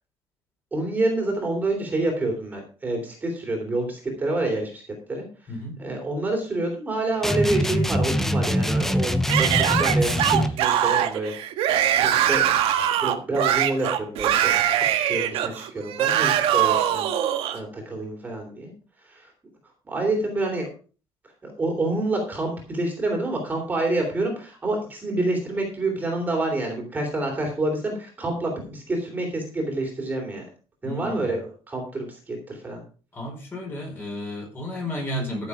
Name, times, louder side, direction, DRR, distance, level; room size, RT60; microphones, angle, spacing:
voice 1, 0.7-4.8 5.1-5.2 5.8-11.3 11.9-12.5 13.0-17.1 17.5-18.7 19.1-19.3 19.9-20.7 21.4-30.4 30.8-31.4 31.7-32.8, right 2 dB, 15° right, 1 dB, 3.2 m, -27 dB
sound 1, 7.2-10.6, equal, 5° left, 0.7 m, -23 dB
Yell / Screaming, 9.3-17.6, right 11 dB, 75° right, 1.5 m, -22 dB
voice 2, 30.8-31.4 33.1-35.5, left 1 dB, 20° left, 1 dB, 4.8 m, -32 dB
14.0 x 7.1 x 4.9 m, 0.37 s
cardioid pair, 170°, 10 cm